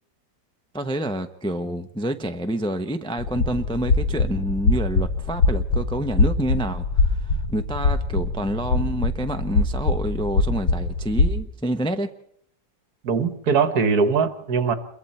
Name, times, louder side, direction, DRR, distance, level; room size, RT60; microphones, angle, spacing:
voice 1, 0.7-12.1, right 1 dB, 5° left, 0.5 m, -28 dB
sound 1, 3.2-11.3, left 3 dB, 80° left, 3.7 m, -23 dB
voice 2, 13.0-14.7, right 5 dB, 70° right, 1.8 m, -21 dB
27.5 x 22.5 x 4.3 m
omnidirectional pair, 1.7 m